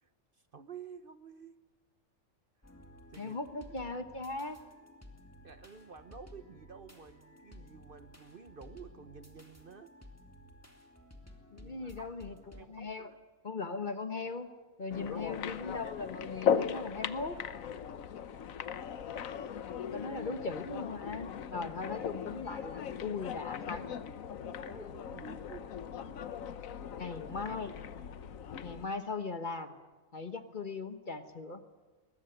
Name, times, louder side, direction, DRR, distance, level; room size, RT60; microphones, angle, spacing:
voice 1, 0.0-1.6 3.1-3.4 3.7-3.8 5.4-9.9 11.6-13.2 14.9-15.4 24.6-25.7 27.1-27.3, right 6 dB, 45° right, 11 dB, 1.0 m, -51 dB
sound 1, 2.6-12.6, left 1 dB, 10° left, 2.6 m, -55 dB
voice 2, 3.2-4.6 11.5-13.1 13.4-14.5 14.8-17.5 19.9-23.9 26.9-27.8 28.6-29.8 30.1-31.6, left 3 dB, 40° left, 9 dB, 1.3 m, -39 dB
sound 2, 14.9-28.9, left 8 dB, 85° left, 1.3 m, -38 dB
21.0 x 21.0 x 9.3 m, 1.3 s
omnidirectional pair, 1.4 m